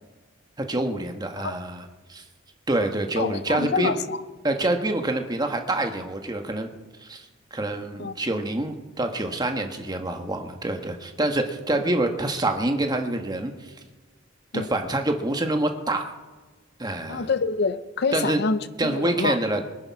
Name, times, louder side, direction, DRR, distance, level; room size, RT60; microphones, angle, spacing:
voice 1, 0.6-2.2 2.7-4.0 4.4-6.7 7.0-7.2 7.5-13.7 14.5-16.1 16.8-17.3 18.1-18.4 18.8-19.6, right 2 dB, 20° right, 5 dB, 1.4 m, -26 dB
voice 2, 3.2-4.2 7.9-8.2 14.5-14.7 17.1-19.4, left 4 dB, 55° left, 13 dB, 0.7 m, -26 dB
24.5 x 10.0 x 4.7 m, 1.3 s
head